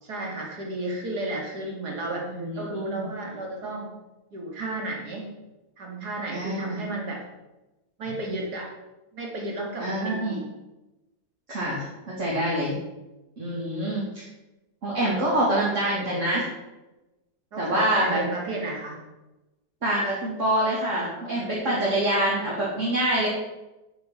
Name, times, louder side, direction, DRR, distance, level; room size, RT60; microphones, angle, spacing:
voice 1, 0.0-4.0 4.3-5.3 5.8-7.2 8.0-8.7 9.1-10.5 17.5-19.0, right 2 dB, 75° right, 0 dB, 3.1 m, -33 dB
voice 2, 2.2-3.1 6.3-6.8 9.8-10.4 11.5-11.8 12.2-12.7 13.4-14.3 14.8-16.5 17.6-18.2 19.8-23.3, right 1 dB, 50° right, -7 dB, 3.0 m, -25 dB
9.2 x 9.2 x 6.2 m, 1.0 s
omnidirectional pair, 1.7 m